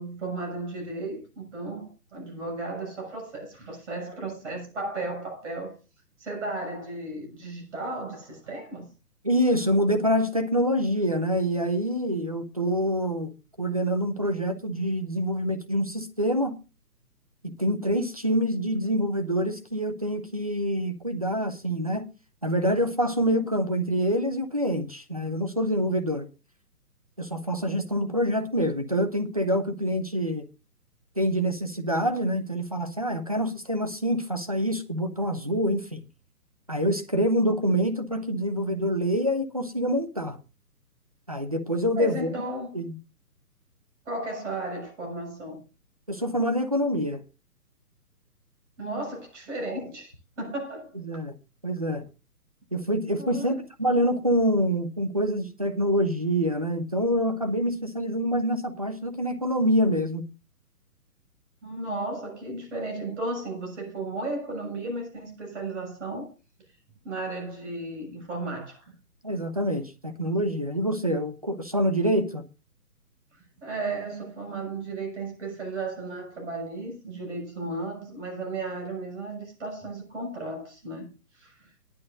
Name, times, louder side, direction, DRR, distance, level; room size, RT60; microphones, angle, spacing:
voice 1, 0.0-5.7 6.2-8.9 41.9-42.7 44.0-45.6 48.8-50.9 53.2-53.6 61.6-66.3 67.0-68.9 73.3-81.1 81.3-81.7, right 2 dB, 50° right, 6.6 m, -34 dB
voice 2, 9.2-13.3 13.6-16.6 17.6-22.1 22.4-26.3 27.2-30.4 31.2-36.0 36.7-40.4 41.3-42.3 42.7-43.0 46.1-47.2 51.0-51.3 51.6-52.0 52.7-60.2 69.2-72.4, equal, 25° right, 0.5 m, -26 dB
18.0 x 11.0 x 2.5 m
hypercardioid pair, 165°, 47 cm